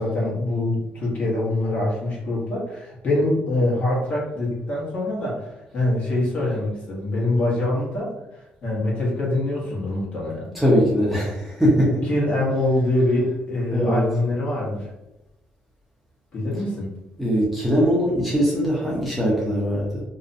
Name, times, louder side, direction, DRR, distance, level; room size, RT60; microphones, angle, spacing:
voice 1, 0.0-5.5 5.7-8.1 8.6-10.4 12.1-14.9 16.3-16.9, left 1 dB, 45° left, -5 dB, 0.9 m, -24 dB
voice 2, 10.5-12.0 13.7-14.0 17.2-20.0, equal, ahead, -6 dB, 0.6 m, -21 dB
2.5 x 2.1 x 2.5 m, 0.93 s
cardioid pair, 140°, 3 cm